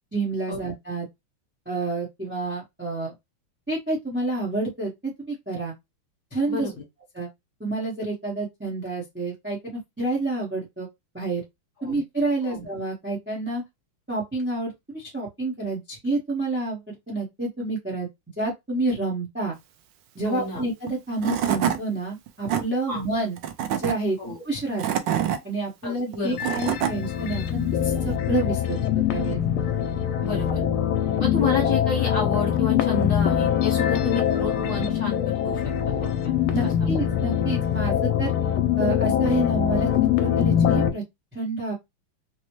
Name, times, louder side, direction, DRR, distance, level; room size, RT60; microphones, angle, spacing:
voice 1, 0.1-1.1 1.7-3.1 3.7-5.7 6.3-6.7 7.1-7.3 7.6-10.9 11.1-11.4 11.8-13.6 14.1-18.1 18.4-19.6 20.1-23.4 23.7-24.2 24.4-24.8 25.4-29.4 36.5-38.3 38.8-39.9 40.2-41.0 41.3-41.7, right 2 dB, 10° right, 0.6 m, -28 dB
voice 2, 6.5-6.8 11.8-12.0 12.4-12.6 20.2-20.6 22.9-23.0 24.2-24.4 25.8-26.6 30.2-30.6 31.2-35.6 36.0-36.1 36.6-36.9, left 4 dB, 45° left, 1.2 m, -30 dB
Tools / Wood, 20.9-21.0 21.2-21.8 22.3-22.6 23.4-23.9 24.6-25.4 26.1-26.9, right 9 dB, 75° right, 1.1 m, -25 dB
sound 1, 26.2-40.9, left 9 dB, 80° left, 1.4 m, -23 dB
4.1 x 2.1 x 3.0 m
omnidirectional pair, 2.4 m